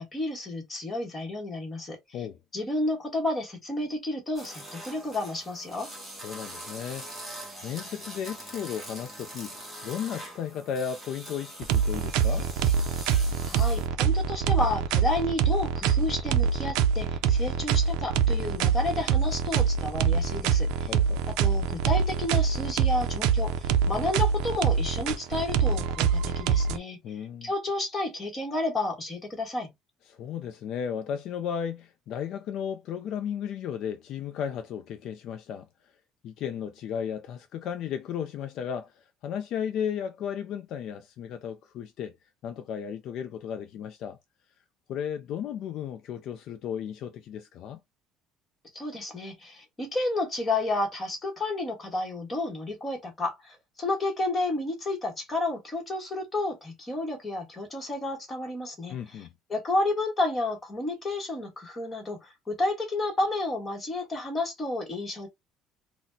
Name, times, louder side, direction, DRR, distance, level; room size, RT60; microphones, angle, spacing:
voice 1, 0.0-2.0 2.5-5.9 13.5-20.9 21.3-29.7 48.7-65.3, left 2 dB, 20° left, 1.1 m, -31 dB
sound 1, 4.4-13.9, right 1 dB, 5° right, 1.0 m, -43 dB
voice 2, 6.2-7.1 7.6-12.5 20.9-21.2 27.0-27.5 30.1-35.9 36.2-42.2 42.4-44.2 44.9-47.8 58.9-59.3, left 8 dB, 50° left, 0.3 m, -34 dB
sound 2, 11.6-26.8, right 6 dB, 75° right, 0.4 m, -25 dB
4.1 x 2.0 x 2.6 m
cardioid pair, 165°, 0 cm